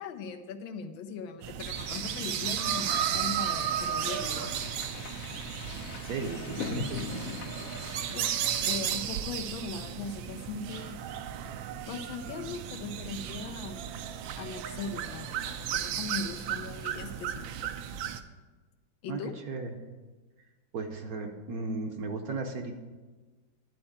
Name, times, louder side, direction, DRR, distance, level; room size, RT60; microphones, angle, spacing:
voice 1, 0.0-4.5 8.1-8.3 8.6-11.0 11.9-13.8 14.4-17.7 19.0-19.3, left 5 dB, 90° left, 8 dB, 1.5 m, -39 dB
sound 1, 1.4-18.2, right 9 dB, 80° right, 1.3 m, -34 dB
sound 2, 1.7-8.8, left 5 dB, 60° left, 1.0 m, -42 dB
voice 2, 6.0-7.3 19.1-19.7 20.7-22.7, right 3 dB, 60° right, 4 dB, 1.0 m, -36 dB
11.0 x 4.4 x 7.1 m, 1.3 s
omnidirectional pair, 2.1 m